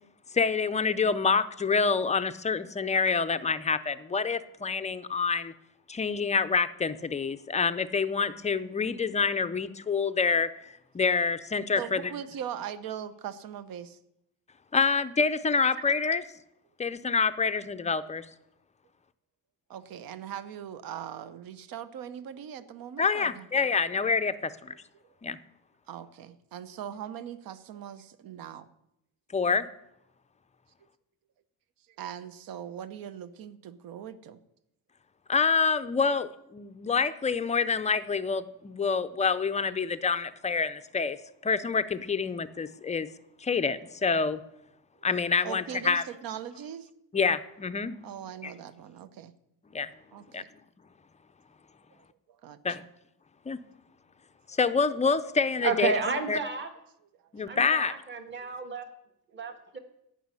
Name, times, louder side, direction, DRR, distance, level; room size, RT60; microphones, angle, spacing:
voice 1, 0.3-5.5 5.9-10.7 10.9-12.1 14.7-16.2 16.8-18.3 23.0-24.7 25.2-25.4 29.3-29.7 35.3-41.2 41.4-43.1 43.4-44.4 45.0-46.0 47.1-48.1 48.4-48.5 49.7-49.9 50.3-50.4 52.6-52.8 53.5-53.6 54.5-55.9 56.3-56.4 57.3-57.9, left 5 dB, 20° left, 11 dB, 0.5 m, -27 dB
voice 2, 11.8-14.0 19.7-23.5 25.9-28.7 32.0-34.4 45.4-46.9 48.0-49.3 50.1-50.5 52.4-52.9 58.2-58.5, right 9 dB, 60° right, 14 dB, 0.9 m, -40 dB
voice 3, 55.6-56.7 57.4-58.9 59.3-59.8, right 4 dB, 30° right, 7 dB, 1.4 m, -31 dB
13.5 x 6.2 x 9.6 m, 0.81 s
cardioid pair, 160°, 39 cm